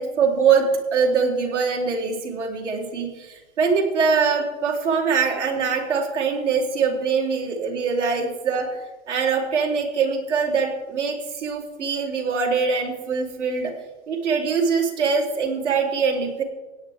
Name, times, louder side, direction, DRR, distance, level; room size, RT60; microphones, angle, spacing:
voice 1, 0.0-8.8 9.1-13.7 14.1-16.4, right 5 dB, 80° right, 0 dB, 3.8 m, -23 dB
17.5 x 9.7 x 3.6 m, 1.2 s
hypercardioid pair, 135°, 35 cm